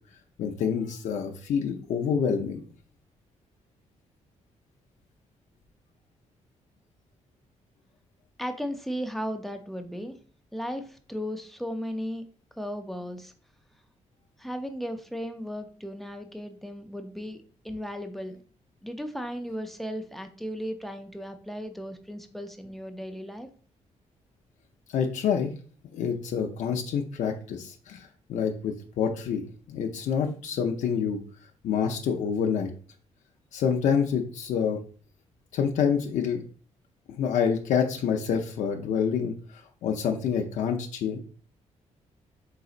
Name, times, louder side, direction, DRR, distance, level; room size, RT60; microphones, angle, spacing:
voice 1, 0.4-2.6 24.9-25.5 25.9-31.2 31.6-32.7 33.5-34.8 35.5-36.4 37.1-41.2, left 7 dB, 85° left, 3 dB, 0.5 m, -27 dB
voice 2, 8.4-10.2 10.5-12.3 12.6-13.3 14.4-18.4 18.8-23.5, equal, ahead, 6 dB, 0.5 m, -35 dB
4.0 x 3.9 x 2.4 m, 0.42 s
cardioid pair, 135°, 12 cm